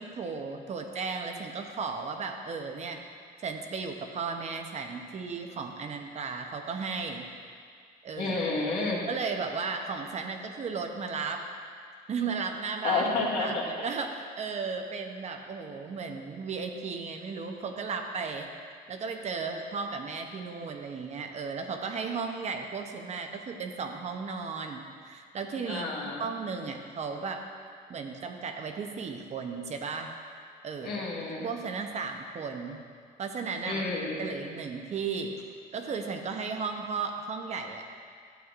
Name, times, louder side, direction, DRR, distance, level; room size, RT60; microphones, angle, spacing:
voice 1, 0.0-3.0 3.4-7.3 8.0-8.3 9.1-11.5 12.1-13.0 13.4-25.9 26.2-27.4 27.9-30.1 30.6-31.0 31.4-32.8 33.2-33.8 34.2-35.4 35.7-37.8, right 5 dB, 40° right, 4 dB, 0.8 m, -35 dB
voice 2, 8.2-9.0 12.8-13.9 25.7-26.3 30.8-31.5 33.6-34.3, left 3 dB, 75° left, -5 dB, 2.0 m, -30 dB
12.5 x 7.7 x 2.5 m, 2.1 s
cardioid pair, 110°, 17 cm